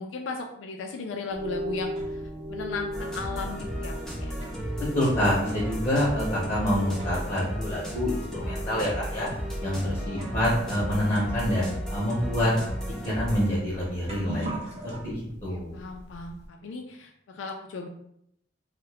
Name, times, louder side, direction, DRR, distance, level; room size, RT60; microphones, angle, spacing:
voice 1, 0.0-2.2 2.5-4.3 10.0-10.5 15.5-17.9, left 4 dB, 80° left, 2 dB, 0.4 m, -37 dB
sound 1, 1.3-2.4 3.3-3.4 4.0-7.5 7.8-7.9 8.7-8.8 9.6-9.7 10.1-15.0, right 1 dB, 35° right, 0.7 m, -42 dB
sound 2, 1.3-16.5, equal, 65° right, 0.7 m, -40 dB
sound 3, 2.9-13.5, equal, 5° left, 0.5 m, -34 dB
voice 2, 4.8-9.3 9.6-12.5 13.0-14.6 15.0-15.8, left 1 dB, 35° left, -7 dB, 0.9 m, -27 dB
2.7 x 2.4 x 3.2 m, 0.75 s
head